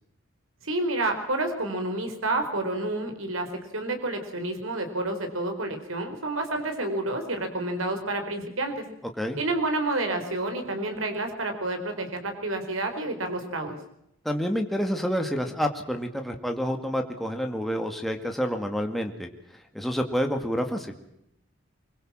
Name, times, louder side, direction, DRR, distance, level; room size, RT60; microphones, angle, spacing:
voice 1, 0.6-3.5 3.7-8.8 9.4-13.8, right 2 dB, 85° right, 5 dB, 4.6 m, -29 dB
voice 2, 14.2-19.3 19.7-20.9, equal, ahead, 3 dB, 2.1 m, -28 dB
25.0 x 22.5 x 7.6 m, 0.78 s
head